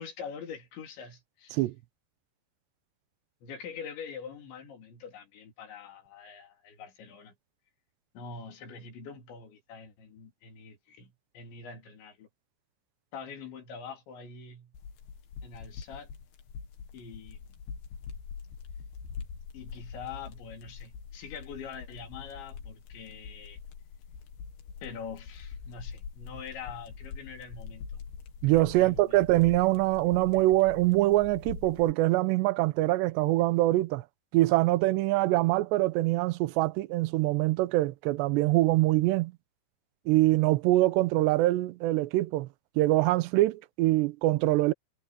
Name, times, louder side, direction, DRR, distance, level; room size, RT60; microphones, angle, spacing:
voice 1, 0.0-1.6 3.4-7.3 8.1-12.3 13.1-14.7 15.4-16.1 16.9-17.4 19.5-23.6 24.8-27.9 28.7-29.2, left 6 dB, 90° left, 6.0 m, -44 dB
sound 1, 14.7-31.9, left 6 dB, 65° left, 4.1 m, -44 dB
voice 2, 28.4-34.0 34.3-39.3 40.1-42.5 42.8-44.7, right 18 dB, 85° right, 2.9 m, -24 dB
omnidirectional pair, 5.0 m